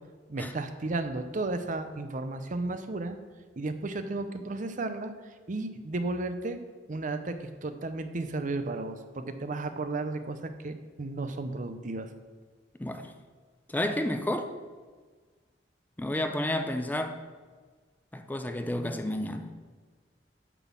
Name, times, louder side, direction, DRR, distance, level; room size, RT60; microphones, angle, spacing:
voice 1, 0.3-3.2 3.6-5.1 5.5-6.6 6.9-10.4 10.6-12.1, right 2 dB, 45° right, 0.6 m, -33 dB
voice 2, 12.8-13.1 13.7-14.5 16.0-17.2 18.1-19.5, left 1 dB, 10° left, 0.4 m, -31 dB
8.9 x 4.1 x 7.2 m
head